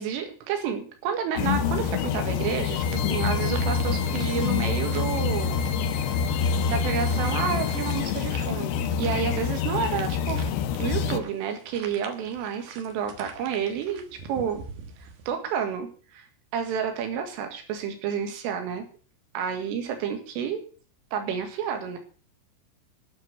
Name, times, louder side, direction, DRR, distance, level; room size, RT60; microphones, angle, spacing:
voice 1, 0.0-5.6 6.0-6.2 6.7-10.4 10.8-14.6 15.0-16.3 16.5-18.9 19.3-20.6 21.1-22.0, right 7 dB, 80° right, 5 dB, 4.4 m, -30 dB
sound 1, 1.4-11.2, left 6 dB, 85° left, 2.5 m, -26 dB
sound 2, 1.4-15.3, right 5 dB, 65° right, 2.6 m, -45 dB
sound 3, 2.3-8.0, left 6 dB, 60° left, 1.8 m, -38 dB
10.5 x 6.5 x 8.6 m, 0.42 s
omnidirectional pair, 5.7 m